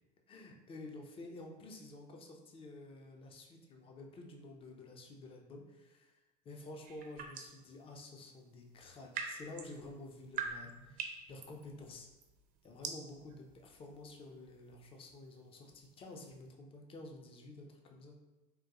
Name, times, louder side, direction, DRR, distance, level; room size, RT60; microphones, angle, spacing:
voice 1, 0.3-6.2 6.4-12.1 12.6-18.2, left 2 dB, 25° left, 2 dB, 0.5 m, -51 dB
sound 1, 6.9-7.7 8.7-16.5, right 6 dB, 40° right, 0.5 m, -46 dB
3.5 x 2.3 x 2.9 m, 1.1 s
hypercardioid pair, 100°, 21 cm